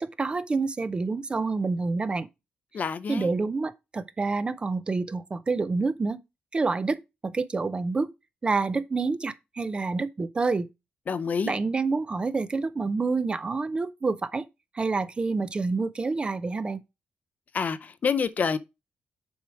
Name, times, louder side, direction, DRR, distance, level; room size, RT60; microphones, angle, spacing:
voice 1, 0.0-2.3 3.1-6.2 6.5-7.0 7.2-8.1 8.4-10.7 11.4-14.4 14.7-16.8, right 3 dB, 25° right, 0.5 m, -28 dB
voice 2, 2.7-3.3 11.1-11.5 17.5-18.6, left 6 dB, 50° left, 0.6 m, -27 dB
7.2 x 4.9 x 4.5 m
wide cardioid pair, 125°, 4 cm